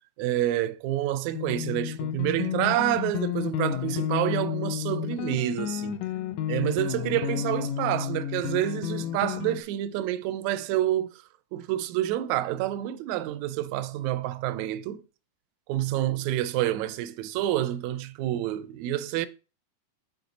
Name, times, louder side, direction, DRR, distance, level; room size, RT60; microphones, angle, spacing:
voice 1, 0.2-6.0 6.5-11.2 11.5-15.0 15.7-19.3, right 13 dB, 80° right, 1.8 m, -28 dB
sound 1, 1.3-9.6, left 10 dB, 75° left, 1.8 m, -31 dB
9.2 x 3.8 x 4.0 m
omnidirectional pair, 3.4 m